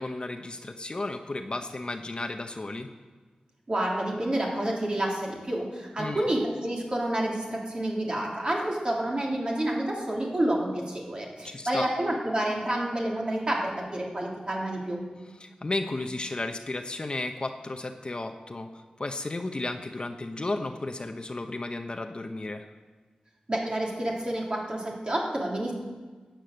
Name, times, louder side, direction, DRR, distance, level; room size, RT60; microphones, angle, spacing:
voice 1, 0.0-2.9 6.0-6.3 11.4-11.9 15.4-22.7, left 2 dB, 40° left, 6 dB, 0.8 m, -33 dB
voice 2, 3.7-15.0 23.5-25.7, right 1 dB, 40° right, -2 dB, 3.1 m, -29 dB
12.0 x 9.1 x 7.8 m, 1.4 s
wide cardioid pair, 95°, 3 cm